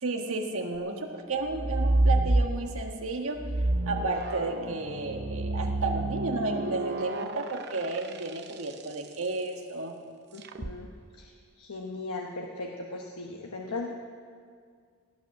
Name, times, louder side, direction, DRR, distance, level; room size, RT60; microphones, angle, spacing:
voice 1, 0.0-3.4 3.9-9.9, right 2 dB, 70° right, 3 dB, 1.6 m, -32 dB
sound 1, 1.5-2.9 3.4-8.9 10.4-10.7, right 2 dB, 45° right, 0.7 m, -28 dB
voice 2, 10.3-10.9 11.2-13.9, left 3 dB, 85° left, 0 dB, 1.1 m, -38 dB
17.5 x 9.0 x 7.3 m, 2.1 s
head